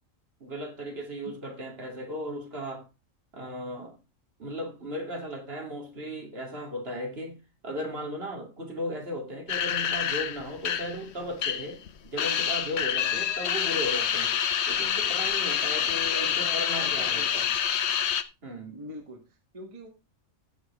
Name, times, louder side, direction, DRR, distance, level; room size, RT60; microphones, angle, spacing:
voice 1, 0.4-2.9 3.3-3.9 4.4-7.4 7.6-14.3 14.7-17.2 18.4-18.8, equal, 45° right, 2.5 m, -36 dB
sound 1, 9.5-11.9 12.2-18.2, left 8 dB, 55° left, 0.9 m, -27 dB
voice 2, 15.7-17.5 18.7-19.9, equal, 25° right, 1.6 m, -44 dB
15.5 x 6.3 x 3.6 m
omnidirectional pair, 1.5 m